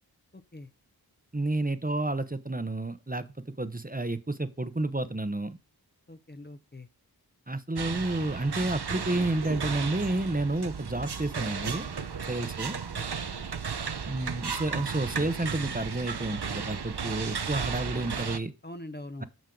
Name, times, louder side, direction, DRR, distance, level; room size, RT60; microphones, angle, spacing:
voice 1, 0.3-0.7 6.1-6.9 12.9-13.0 13.3-13.4 18.6-19.2, left 1 dB, 25° left, 0.8 m, -43 dB
voice 2, 1.3-5.6 7.5-11.9 12.3-12.8 14.1-18.5 19.2-19.3, right 2 dB, 20° right, 0.9 m, -30 dB
sound 1, 7.8-18.4, right 6 dB, 90° right, 0.8 m, -34 dB
9.3 x 6.4 x 3.9 m
wide cardioid pair, 45°, 39 cm